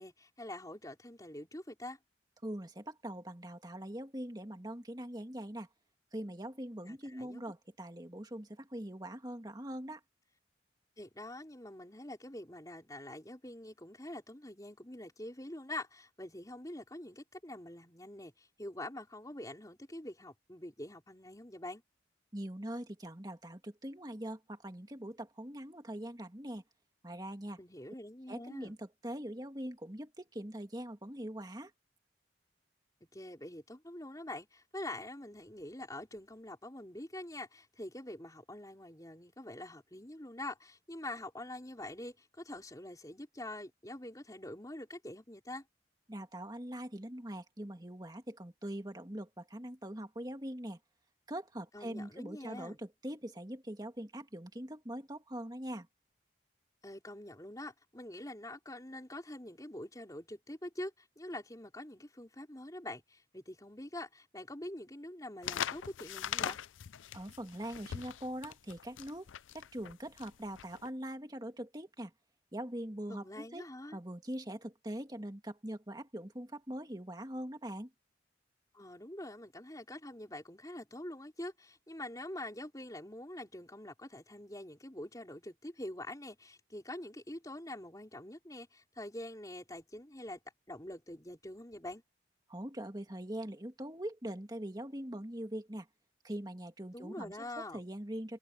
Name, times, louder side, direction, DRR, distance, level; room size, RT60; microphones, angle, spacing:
voice 1, 0.0-2.0 6.8-7.4 11.0-21.8 27.6-28.7 33.1-45.6 51.7-52.8 56.8-66.6 73.1-74.0 78.7-90.4 90.7-92.0 96.9-97.8, left 1 dB, 20° left, 4.5 m, -45 dB
voice 2, 2.4-5.7 6.1-10.0 22.3-26.6 27.0-27.6 28.3-31.7 46.1-50.8 51.3-55.9 67.1-69.3 69.5-72.1 72.5-73.6 73.9-77.9 92.5-95.9 96.2-98.4, right 1 dB, 20° right, 2.1 m, -42 dB
sound 1, 65.4-70.9, left 9 dB, 90° left, 0.5 m, -40 dB
head